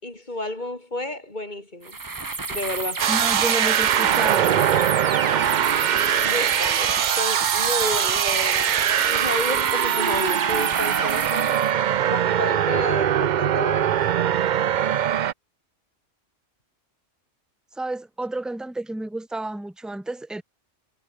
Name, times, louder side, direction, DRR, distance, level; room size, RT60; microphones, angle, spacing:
voice 1, 0.0-2.0 2.5-3.1 6.2-8.8 9.1-11.7 12.0-14.0, left 1 dB, 40° left, 4.2 m, -31 dB
sound 1, 1.8-11.7, right 3 dB, 20° right, 0.7 m, -30 dB
sound 2, 3.0-15.3, right 10 dB, 55° right, 0.6 m, -22 dB
voice 2, 3.1-4.6 17.8-20.4, right 2 dB, ahead, 1.1 m, -31 dB
omnidirectional pair, 1.2 m